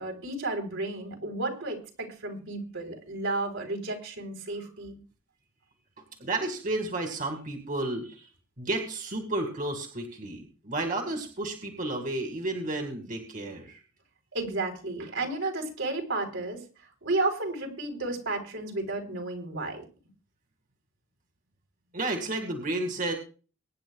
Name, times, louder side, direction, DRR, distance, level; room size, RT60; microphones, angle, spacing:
voice 1, 0.0-5.0 14.3-16.6 17.0-19.8, right 2 dB, 75° right, 3 dB, 3.8 m, -32 dB
voice 2, 6.2-8.3 8.6-13.8 21.9-23.1, right 2 dB, 40° right, 3 dB, 2.1 m, -32 dB
23.5 x 10.0 x 2.3 m, 0.36 s
head